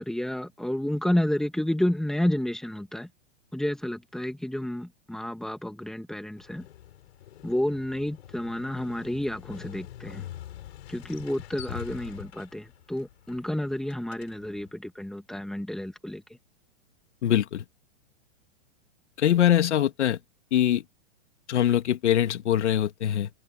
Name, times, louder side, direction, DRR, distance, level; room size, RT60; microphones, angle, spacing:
voice 1, 0.0-3.1 3.5-6.7 7.4-10.2 10.9-16.2, left 1 dB, ahead, 1.8 m, -30 dB
Motorcycle, 6.4-14.7, left 12 dB, 70° left, 7.7 m, -45 dB
voice 2, 17.2-17.6 19.2-20.2 20.5-20.8 21.5-23.3, left 11 dB, 85° left, 2.6 m, -23 dB
supercardioid pair, 165°, 34 cm